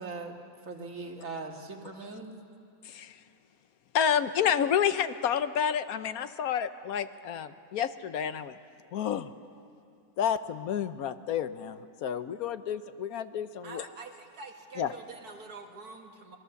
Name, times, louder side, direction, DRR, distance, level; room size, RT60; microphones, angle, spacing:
voice 1, 0.0-2.3, right 3 dB, 60° right, 2 dB, 2.3 m, -40 dB
voice 2, 2.8-3.2 3.9-8.6 8.9-9.3 10.2-13.9 14.8-14.9, left 8 dB, 75° left, 12 dB, 1.2 m, -30 dB
voice 3, 13.6-16.4, right 4 dB, 90° right, 3 dB, 2.2 m, -46 dB
25.5 x 20.5 x 7.0 m, 2.5 s
omnidirectional pair, 1.6 m